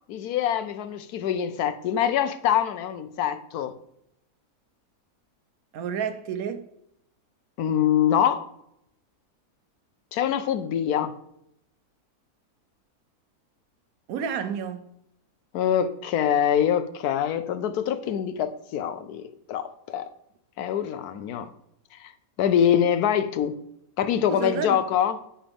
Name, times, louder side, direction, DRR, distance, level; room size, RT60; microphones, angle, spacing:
voice 1, 0.1-3.8 7.6-8.4 10.1-11.1 15.5-20.1 20.6-21.5 22.0-22.1 22.4-23.6 24.0-25.2, left 9 dB, 80° left, 1.1 m, -24 dB
voice 2, 5.7-6.7 14.1-14.9 24.3-24.8, right 7 dB, 70° right, 1.1 m, -30 dB
8.8 x 7.6 x 3.5 m
omnidirectional pair, 1.6 m